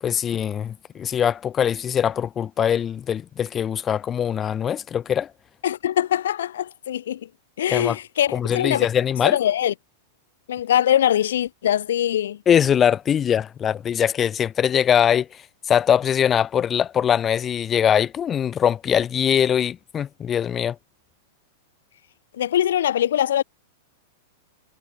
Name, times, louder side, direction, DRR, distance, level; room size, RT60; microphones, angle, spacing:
voice 1, 0.0-5.3 7.7-8.0 8.3-9.4 12.5-15.4 15.7-20.8, left 9 dB, 20° left, 2.2 m, -22 dB
voice 2, 5.6-7.2 7.6-8.9 9.2-9.7 10.5-12.4 22.4-23.4, left 11 dB, 85° left, 1.2 m, -22 dB
supercardioid pair, 160°, 0 cm